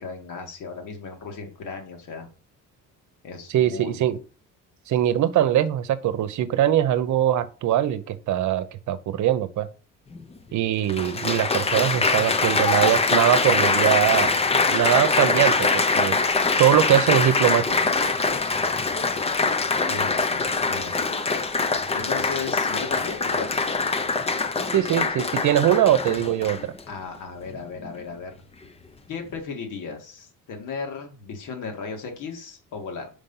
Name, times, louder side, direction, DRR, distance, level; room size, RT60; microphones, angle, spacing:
voice 1, 0.0-2.3 3.2-4.0 19.9-21.1 21.5-23.6 26.9-28.4 29.1-33.1, left 5 dB, 70° left, 4 dB, 2.3 m, -36 dB
voice 2, 3.5-4.2 4.9-9.7 10.5-14.3 14.7-16.2 16.6-17.8 24.7-26.7, right 11 dB, 65° right, 13 dB, 0.9 m, -22 dB
Applause, 10.1-10.2 10.9-26.8 27.5-27.9, left 4 dB, 20° left, 0.6 m, -23 dB
5.2 x 5.1 x 5.7 m, 0.36 s
cardioid pair, 135°, 32 cm